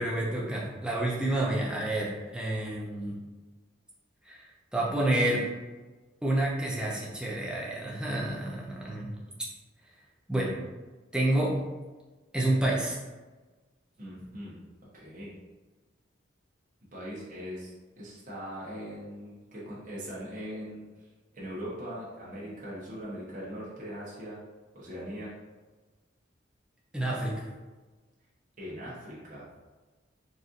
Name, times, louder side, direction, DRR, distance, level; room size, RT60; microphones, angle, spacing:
voice 1, 0.0-3.2 4.2-5.5 6.2-9.1 10.3-10.6 11.1-11.6 12.3-13.0 26.9-27.5, right 1 dB, 5° right, -4 dB, 0.5 m, -29 dB
voice 2, 14.0-14.7 14.9-15.3 16.9-20.8 21.3-24.4 24.7-25.3 28.6-29.4, equal, 40° right, -7 dB, 0.9 m, -40 dB
4.0 x 2.5 x 2.5 m, 1.3 s
head